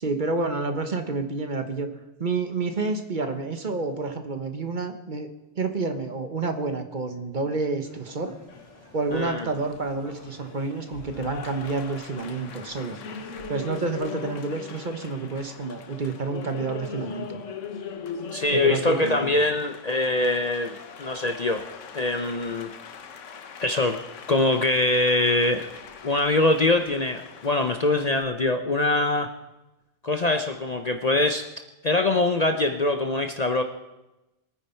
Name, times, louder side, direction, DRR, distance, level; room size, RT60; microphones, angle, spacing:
voice 1, 0.0-1.9 2.2-5.3 5.6-8.3 8.9-13.0 13.5-17.4 18.6-19.4, right 3 dB, 45° right, 7 dB, 1.2 m, -29 dB
sound 1, 7.8-13.4, left 1 dB, 15° left, 4.4 m, -51 dB
Applause, 8.5-28.2, left 5 dB, 85° left, 1.3 m, -40 dB
voice 2, 9.1-9.5 18.3-21.7 21.9-22.7 23.6-24.0 24.3-25.7 26.0-29.3 30.0-31.5 31.8-33.6, left 2 dB, 40° left, 6 dB, 0.7 m, -23 dB
22.5 x 9.5 x 4.4 m, 0.99 s
omnidirectional pair, 1.2 m